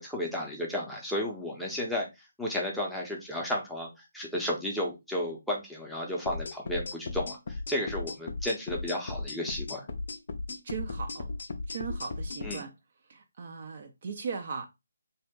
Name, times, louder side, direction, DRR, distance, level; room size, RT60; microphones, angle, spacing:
voice 1, 0.0-2.1 2.4-3.9 4.1-9.9 12.4-12.6, left 1 dB, ahead, 0.6 m, -33 dB
sound 1, 6.3-12.6, left 3 dB, 50° left, 0.4 m, -36 dB
voice 2, 10.6-11.3 11.7-12.7 13.1-14.7, right 6 dB, 40° right, 0.4 m, -38 dB
2.7 x 2.1 x 3.6 m
figure-of-eight pair, 145°, 0 cm